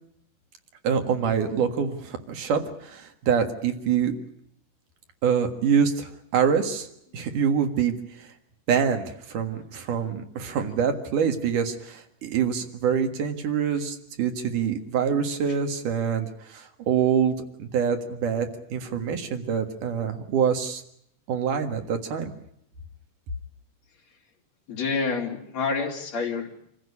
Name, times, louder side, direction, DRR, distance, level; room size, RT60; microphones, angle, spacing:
voice 1, 0.8-4.1 5.2-6.9 7.1-8.3 8.7-20.8 21.3-22.3, right 7 dB, 80° right, 6 dB, 3.3 m, -25 dB
voice 2, 24.7-26.6, left 4 dB, 55° left, 1 dB, 3.9 m, -28 dB
26.5 x 15.0 x 9.7 m, 0.74 s
omnidirectional pair, 3.6 m